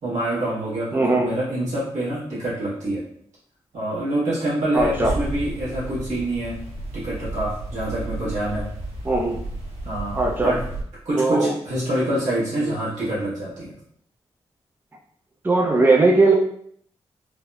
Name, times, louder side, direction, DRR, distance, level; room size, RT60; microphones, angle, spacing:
voice 1, 0.0-3.0 3.7-6.7 6.9-8.7 9.8-10.6 11.0-13.7, right 1 dB, 85° right, -9 dB, 1.4 m, -26 dB
voice 2, 0.9-1.3 4.7-5.1 9.0-9.4 10.1-10.5 11.2-11.5 15.4-16.4, right 2 dB, 15° right, 1 dB, 0.4 m, -18 dB
sound 1, 4.8-10.8, right 2 dB, 60° right, 1.2 m, -32 dB
3.4 x 2.0 x 2.3 m, 0.66 s
supercardioid pair, 45°, 12 cm